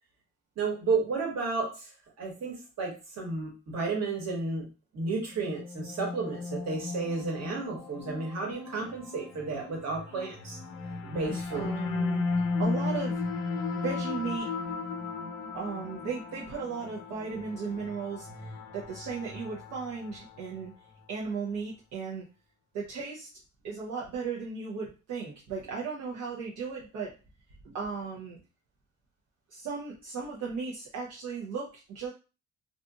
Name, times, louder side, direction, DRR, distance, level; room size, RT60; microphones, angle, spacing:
voice 1, 0.6-1.9 2.2-4.7 4.9-10.6 11.1-11.7, right 4 dB, 60° right, 0 dB, 1.3 m, -32 dB
sound 1, 5.3-20.6, left 4 dB, 80° left, 0.6 m, -35 dB
voice 2, 11.0-12.3 12.6-13.2 13.7-14.5 15.5-20.7 21.1-22.2 22.7-23.3 23.6-27.1 27.6-28.4 29.5-32.1, right 5 dB, 80° right, -4 dB, 0.7 m, -36 dB
2.7 x 2.5 x 2.3 m, 0.32 s
cardioid pair, 90°, 30 cm